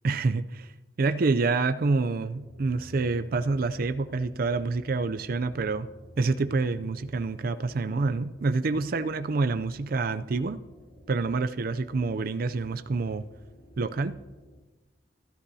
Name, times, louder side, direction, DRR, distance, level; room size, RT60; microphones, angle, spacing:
voice 1, 0.0-0.7 1.0-5.9 6.2-10.6 11.1-13.2 13.8-14.2, right 3 dB, 55° right, 11 dB, 0.5 m, -27 dB
sound 1, 2.3-14.6, left 1 dB, 65° left, 4.2 m, -52 dB
22.5 x 13.0 x 2.8 m, 1.2 s
head